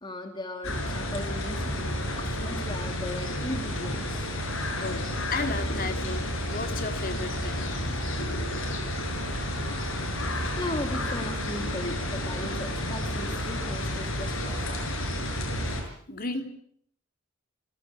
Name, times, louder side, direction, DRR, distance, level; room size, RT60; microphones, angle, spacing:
voice 1, 0.0-4.3 10.6-14.8, left 1 dB, 25° left, 6 dB, 2.4 m, -37 dB
sound 1, 0.6-15.8, left 1 dB, 80° left, 7.0 m, -31 dB
voice 2, 4.8-7.7 16.1-16.4, left 3 dB, 45° left, 7 dB, 3.0 m, -34 dB
29.5 x 17.0 x 8.2 m, 0.65 s
head